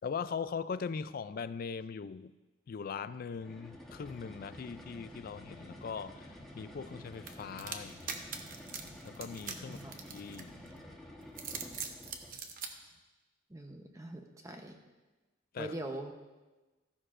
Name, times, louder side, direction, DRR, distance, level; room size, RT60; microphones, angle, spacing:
voice 1, 0.0-2.3 2.7-8.2 9.0-10.6 15.5-15.7, left 6 dB, 45° left, 15 dB, 0.3 m, -40 dB
sound 1, 3.3-12.4, left 1 dB, ahead, 1.2 m, -50 dB
sound 2, 7.3-10.7 11.2-12.7, right 6 dB, 45° right, 0.8 m, -41 dB
voice 2, 13.5-14.8 15.6-16.1, right 1 dB, 15° right, 4 dB, 0.8 m, -42 dB
14.5 x 11.0 x 2.5 m, 1.2 s
head